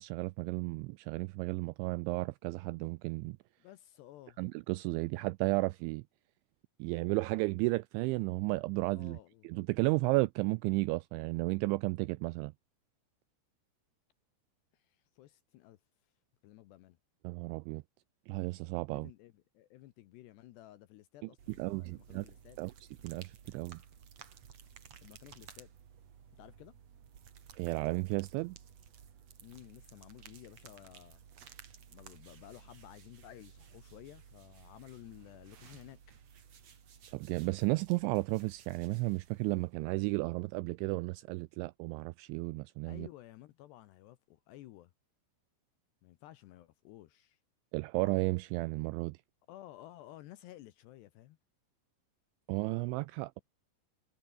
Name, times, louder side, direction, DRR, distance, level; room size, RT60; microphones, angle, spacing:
voice 1, 0.0-3.4 4.4-6.0 6.8-9.2 9.4-12.5 17.2-17.8 18.3-19.1 21.6-22.3 22.6-22.7 23.0-23.8 27.6-28.6 37.1-43.1 47.7-49.2 52.5-53.4, right 23 dB, 85° right, 2.7 m, -33 dB
voice 2, 3.6-4.4 8.9-9.5 14.7-15.8 16.4-17.0 18.9-22.6 25.0-25.7 26.4-26.7 29.4-31.2 31.9-36.0 42.9-44.9 46.0-47.4 49.5-51.4, left 14 dB, 75° left, 2.7 m, -54 dB
sound 1, 21.4-40.3, right 8 dB, 45° right, 2.4 m, -56 dB
omnidirectional pair, 5.8 m